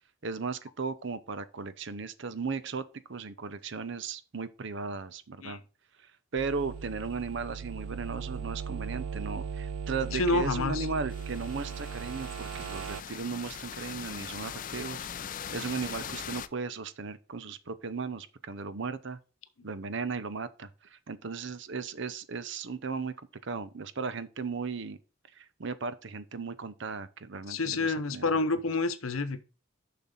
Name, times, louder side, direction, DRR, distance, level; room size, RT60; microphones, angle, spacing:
voice 1, 0.2-5.6 6.3-15.1 15.5-19.2 19.6-23.1 23.4-25.0 25.3-28.3, right 4 dB, 60° right, 0.7 m, -36 dB
sound 1, 6.4-13.0, right 6 dB, 90° right, 0.4 m, -38 dB
voice 2, 10.1-10.9 27.5-29.4, left 3 dB, 80° left, 0.9 m, -28 dB
sound 2, 11.1-16.5, left 8 dB, 40° left, 0.4 m, -41 dB
7.0 x 5.9 x 3.9 m
head